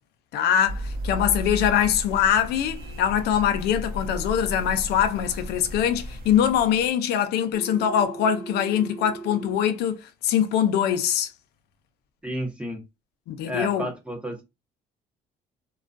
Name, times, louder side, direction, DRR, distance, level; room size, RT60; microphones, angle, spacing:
voice 1, 0.3-11.3 13.3-13.9, left 9 dB, 75° left, 0.4 m, -23 dB
sound 1, 0.6-6.9, equal, 65° right, 0.8 m, -34 dB
Telephone, 7.5-9.5, right 4 dB, 10° left, 1.1 m, -38 dB
voice 2, 12.2-12.8 13.5-14.4, equal, 5° right, 0.8 m, -31 dB
2.3 x 2.2 x 2.4 m
cardioid pair, 110°, 17 cm